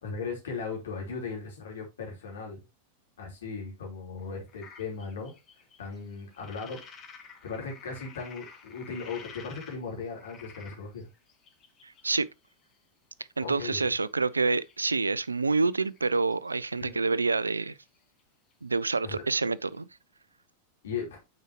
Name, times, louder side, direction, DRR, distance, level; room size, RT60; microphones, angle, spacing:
voice 1, 0.0-2.6 3.2-5.3 5.8-6.8 7.4-11.1 13.4-13.9 16.8-17.0 19.0-19.1 20.8-21.2, left 5 dB, 65° left, 3.1 m, -37 dB
sound 1, 4.5-9.8 10.1-12.6 14.2-15.1 15.4-15.7 16.0-18.2 18.5-18.6 18.8-18.9 19.1-19.2 19.4-19.5 19.7-19.8, left 5 dB, 30° left, 1.9 m, -51 dB
voice 2, 11.8-12.3 13.4-17.8 18.6-19.9, right 3 dB, 80° right, 0.3 m, -27 dB
9.0 x 4.8 x 3.0 m
figure-of-eight pair, 90°, 0 cm